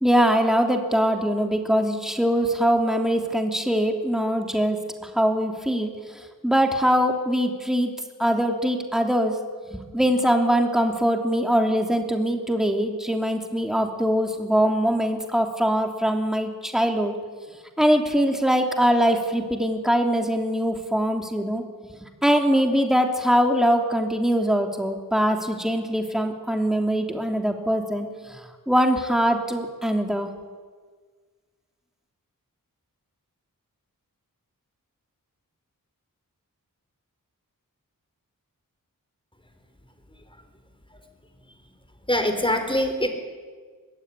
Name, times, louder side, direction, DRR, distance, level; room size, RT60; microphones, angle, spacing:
voice 1, 0.0-7.9 8.2-9.3 9.7-17.1 17.8-21.6 22.0-30.3, equal, ahead, 3 dB, 3.0 m, -22 dB
voice 2, 42.1-43.1, left 1 dB, 15° left, 6 dB, 4.4 m, -23 dB
24.5 x 20.5 x 9.8 m, 1.5 s
wide cardioid pair, 75°, 34 cm